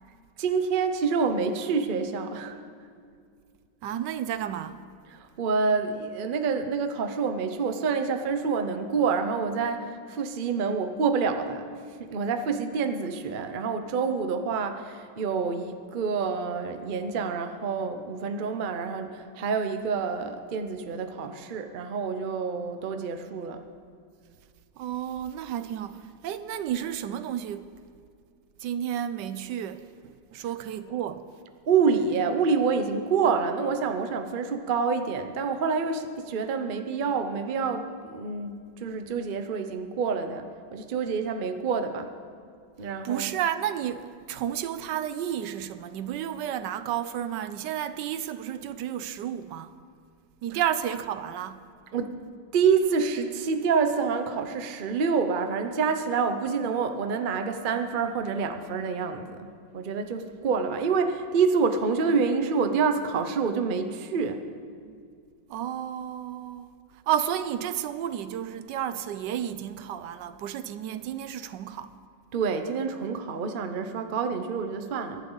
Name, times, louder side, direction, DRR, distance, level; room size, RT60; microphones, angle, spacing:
voice 1, 0.4-2.6 5.1-11.7 12.0-23.6 31.7-42.1 42.8-43.3 50.5-50.6 51.9-52.2 52.5-64.4 72.3-75.3, right 5 dB, 45° right, 0.7 m, -27 dB
voice 2, 3.8-4.8 24.8-27.7 28.6-31.3 43.0-49.7 50.4-51.6 64.8-64.9 65.5-72.0, right 10 dB, 75° right, 1.2 m, -32 dB
23.5 x 11.0 x 3.9 m
omnidirectional pair, 2.0 m